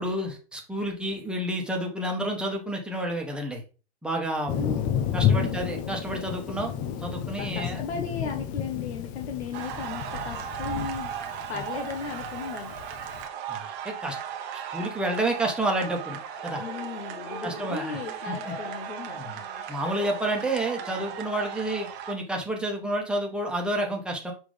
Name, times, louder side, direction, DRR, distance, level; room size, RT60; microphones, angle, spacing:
voice 1, 0.0-3.6 4.0-4.8 5.1-6.7 7.0-7.8 13.5-14.2 14.5-16.2 16.4-16.6 17.4-18.0 18.3-18.5 19.2-19.4 19.7-24.3, right 1 dB, 5° right, 0 dB, 1.2 m, -30 dB
voice 2, 4.5-5.6 7.3-11.1 11.5-12.7 16.6-19.2, left 5 dB, 85° left, 4 dB, 1.2 m, -36 dB
Thunder, 4.5-13.2, left 8 dB, 25° left, 0.4 m, -31 dB
sound 1, 9.5-22.1, right 9 dB, 35° right, 0.9 m, -37 dB
Cheering, 16.4-21.3, left 4 dB, 60° left, 3.6 m, -45 dB
6.1 x 5.1 x 3.3 m, 0.34 s
hypercardioid pair, 135°, 32 cm